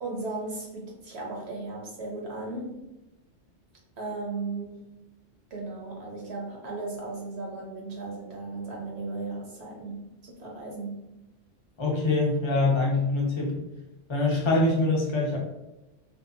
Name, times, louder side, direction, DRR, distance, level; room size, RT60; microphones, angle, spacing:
voice 1, 0.0-2.8 4.0-4.9 5.5-11.0, right 3 dB, 65° right, -1 dB, 0.8 m, -36 dB
voice 2, 11.8-13.6 14.1-15.4, left 2 dB, 35° left, -2 dB, 0.5 m, -24 dB
2.7 x 2.1 x 2.4 m, 0.95 s
omnidirectional pair, 1.3 m